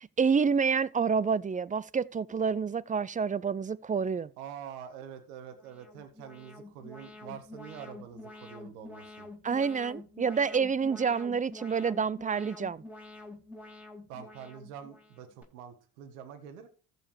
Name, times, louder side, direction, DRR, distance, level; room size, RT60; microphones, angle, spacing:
voice 1, 0.0-4.3 9.4-12.8, right 6 dB, 20° right, 0.5 m, -28 dB
voice 2, 4.4-9.3 14.1-16.7, right 8 dB, 80° right, 1.7 m, -45 dB
Alarm, 5.5-15.4, left 2 dB, 5° right, 4.7 m, -48 dB
14.0 x 5.1 x 4.8 m
hypercardioid pair, 65°, 42 cm